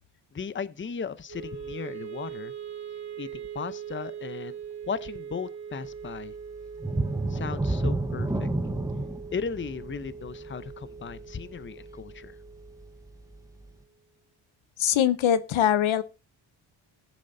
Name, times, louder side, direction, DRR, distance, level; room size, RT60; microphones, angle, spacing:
voice 1, 0.3-2.5 3.2-4.6 4.9-6.3 7.3-8.5 9.3-12.4, left 6 dB, 25° left, 0.7 m, -36 dB
Wind instrument woodwind instrument, 1.3-13.5, right 7 dB, 35° right, 2.9 m, -41 dB
sound 1, 6.8-12.3 12.7-12.8 13.3-13.4, right 2 dB, 5° right, 1.0 m, -30 dB
voice 2, 14.8-16.0, left 10 dB, 75° left, 0.9 m, -22 dB
20.5 x 7.4 x 2.7 m
cardioid pair, 75°, 48 cm